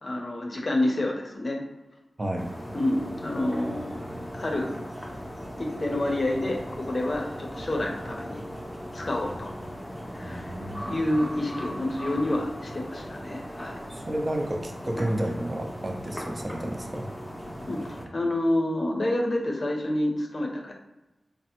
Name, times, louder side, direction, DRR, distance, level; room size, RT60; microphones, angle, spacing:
voice 1, 0.0-1.6 2.7-4.7 5.6-8.4 8.9-9.5 10.1-10.5 10.8-13.8 17.7-20.7, left 1 dB, 50° left, 1 dB, 0.6 m, -28 dB
sound 1, 2.4-18.1, equal, 10° left, 0.6 m, -38 dB
voice 2, 10.2-10.8 13.9-17.1, right 1 dB, 35° right, 2 dB, 0.5 m, -31 dB
3.3 x 2.1 x 2.9 m, 0.99 s
wide cardioid pair, 70°, 0 cm